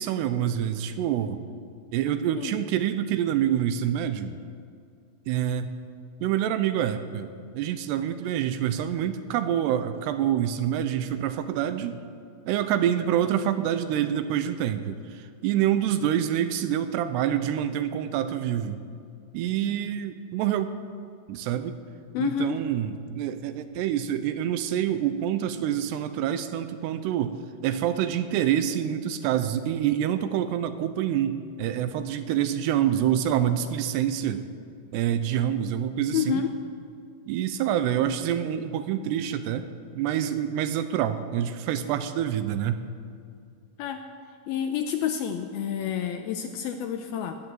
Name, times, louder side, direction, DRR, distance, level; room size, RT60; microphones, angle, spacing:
voice 1, 0.0-1.4 1.9-4.3 5.3-5.7 6.2-12.0 12.5-18.8 19.3-20.7 21.3-21.8 22.2-27.4 27.6-34.5 34.9-36.4 37.3-39.7 40.0-42.8, right 10 dB, 85° right, 10 dB, 2.7 m, -26 dB
voice 2, 22.1-22.6 36.1-36.5 43.8-44.0 44.5-47.4, left 9 dB, 80° left, 6 dB, 2.3 m, -29 dB
17.5 x 11.0 x 7.6 m, 2.3 s
omnidirectional pair, 5.0 m